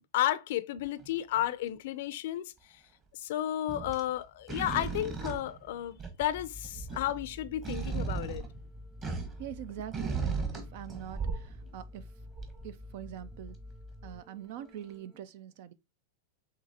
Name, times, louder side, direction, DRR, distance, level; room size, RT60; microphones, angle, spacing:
voice 1, 0.1-2.5 3.1-8.4, left 13 dB, 65° left, 0.5 m, -32 dB
sound 1, 1.0-1.4 3.7-4.1 4.5-6.3 6.6-9.5 9.9-11.6 12.3-12.6 13.3-13.4, right 5 dB, 25° right, 1.2 m, -36 dB
sound 2, 6.2-15.2, left 2 dB, ahead, 0.4 m, -49 dB
voice 2, 9.4-12.1 12.6-13.6 14.0-15.7, right 11 dB, 55° right, 0.5 m, -44 dB
5.9 x 3.0 x 2.8 m
supercardioid pair, 145°, 0 cm